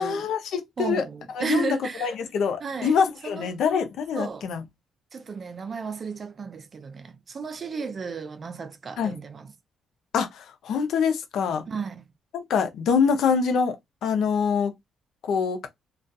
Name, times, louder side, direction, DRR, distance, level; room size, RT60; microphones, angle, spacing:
voice 1, 0.0-1.0 1.4-4.6 9.0-9.2 10.1-11.6 12.3-13.8 14.0-14.7 15.2-15.7, left 6 dB, 75° left, 0.6 m, -25 dB
voice 2, 0.8-2.1 2.6-3.0 3.2-3.5 4.1-4.5 5.1-9.5 11.7-12.1, right 5 dB, 45° right, 0.4 m, -33 dB
2.3 x 2.3 x 2.6 m
cardioid pair, 90°, 0 cm